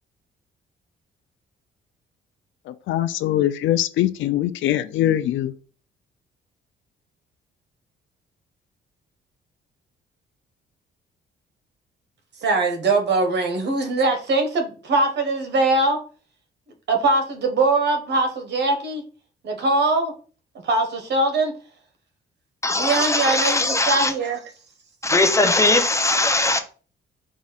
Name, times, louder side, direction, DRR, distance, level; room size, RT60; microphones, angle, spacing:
voice 1, 2.7-5.5, left 12 dB, 75° left, 0.4 m, -22 dB
voice 2, 12.4-16.0 16.9-19.0 19.4-20.1 20.6-21.5 22.8-24.4, right 2 dB, 60° right, 1.1 m, -21 dB
voice 3, 22.6-24.1 25.0-26.6, left 2 dB, 15° left, 0.7 m, -20 dB
4.7 x 2.5 x 4.0 m
cardioid pair, 90°, 20 cm